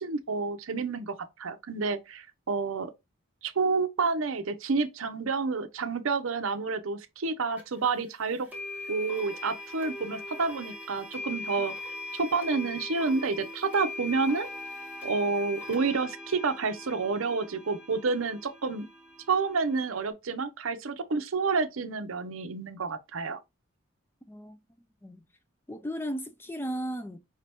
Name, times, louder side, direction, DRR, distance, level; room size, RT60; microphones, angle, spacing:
voice 1, 0.0-2.9 3.4-8.5 8.9-11.7 12.1-14.5 15.0-18.9 19.3-23.4, right 4 dB, 70° right, 0.6 m, -29 dB
sound 1, 7.6-7.7 8.5-20.1, left 2 dB, 5° right, 1.0 m, -40 dB
voice 2, 24.3-24.6 25.0-25.2 25.7-27.2, equal, 10° left, 0.4 m, -35 dB
5.1 x 2.8 x 3.4 m
head